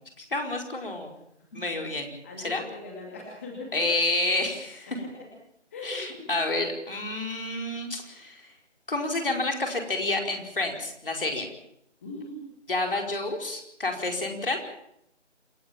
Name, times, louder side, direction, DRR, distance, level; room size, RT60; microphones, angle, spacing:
voice 1, 0.2-1.1 1.5-2.1 2.4-2.6 3.7-5.0 5.8-8.4 8.9-11.5 12.7-14.6, left 2 dB, 50° left, 3 dB, 5.0 m, -29 dB
voice 2, 2.2-3.7 5.7-6.3 12.0-12.4, left 2 dB, 10° left, -2 dB, 2.3 m, -40 dB
27.5 x 16.0 x 7.5 m, 0.76 s
figure-of-eight pair, 165°, 36 cm